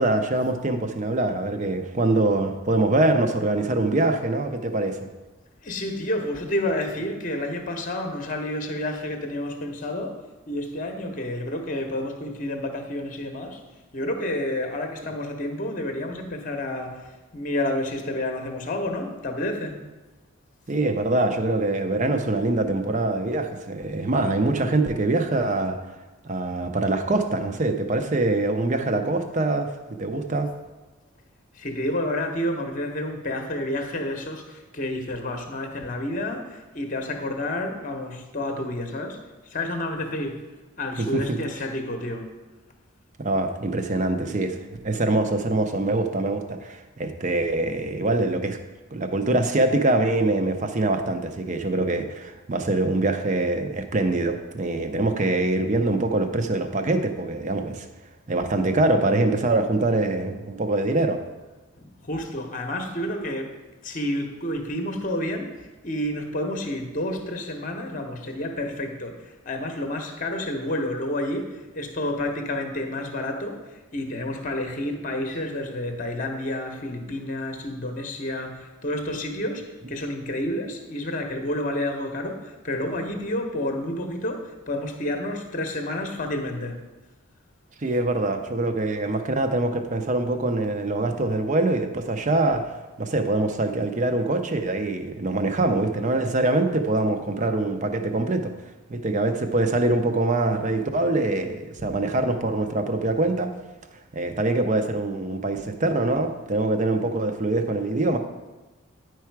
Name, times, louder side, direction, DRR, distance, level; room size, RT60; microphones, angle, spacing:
voice 1, 0.0-5.1 20.7-25.8 26.2-30.5 41.0-41.4 43.2-48.6 48.9-57.9 58.3-61.2 87.8-98.5 98.9-103.5 104.1-108.2, right 2 dB, 35° right, 7 dB, 0.6 m, -24 dB
voice 2, 5.6-10.2 10.5-13.6 13.9-19.8 31.5-40.4 40.8-42.3 61.8-63.5 63.8-86.8, left 1 dB, 35° left, 4 dB, 0.8 m, -30 dB
9.8 x 4.7 x 4.6 m, 1.1 s
head